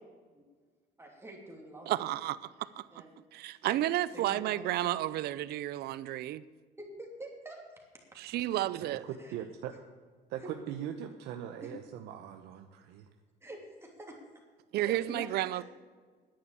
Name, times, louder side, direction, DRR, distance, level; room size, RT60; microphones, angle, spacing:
voice 1, 1.0-2.1 2.9-3.1 3.7-3.8 4.1-4.9 6.8-8.2 9.2-9.3 10.4-10.5 11.6-11.7 13.4-14.2 14.7-15.6, right 1 dB, 15° right, 0 dB, 2.9 m, -47 dB
voice 2, 1.9-3.0 3.3-6.4 8.2-9.0 14.7-15.6, right 14 dB, 70° right, 17 dB, 0.6 m, -32 dB
voice 3, 9.0-9.7 10.3-13.1, right 10 dB, 90° right, 5 dB, 0.9 m, -40 dB
10.5 x 9.0 x 8.5 m, 1.5 s
cardioid pair, 110°, 17 cm